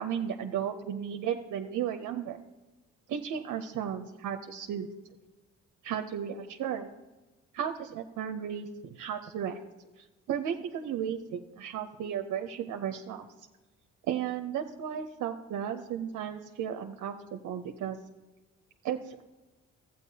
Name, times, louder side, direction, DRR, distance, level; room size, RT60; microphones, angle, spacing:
voice 1, 0.0-2.4 3.1-4.9 5.8-6.9 7.5-9.6 10.0-13.2 14.1-18.0 18.8-19.2, right 9 dB, 75° right, 5 dB, 0.7 m, -34 dB
14.0 x 8.8 x 2.8 m, 1.1 s
cardioid pair, 90°, 30 cm